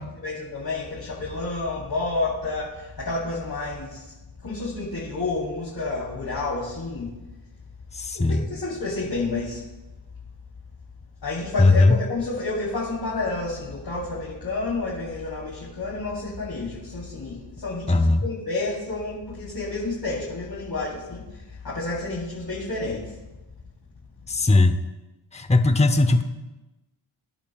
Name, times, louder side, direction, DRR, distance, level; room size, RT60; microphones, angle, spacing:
voice 1, 0.1-4.1 4.4-7.1 8.1-9.6 11.2-23.2, left 3 dB, 45° left, -6 dB, 3.6 m, -30 dB
voice 2, 7.9-8.5 11.6-12.0 17.9-18.2 24.3-24.8 25.3-26.2, left 2 dB, 15° left, 8 dB, 0.8 m, -18 dB
24.5 x 10.5 x 2.4 m, 1.0 s
cardioid pair, 70°, 50 cm